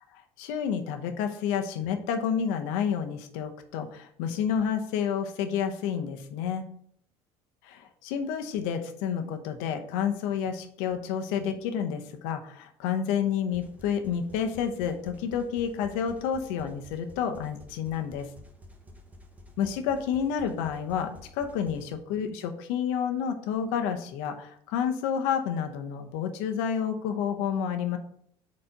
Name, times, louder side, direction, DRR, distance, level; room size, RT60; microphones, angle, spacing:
voice 1, 0.4-6.6 7.6-18.3 19.6-28.0, left 7 dB, 80° left, 7 dB, 0.8 m, -30 dB
sound 1, 13.5-21.9, left 1 dB, 10° right, 1.1 m, -51 dB
4.5 x 4.2 x 5.1 m, 0.65 s
supercardioid pair, 85°, 13 cm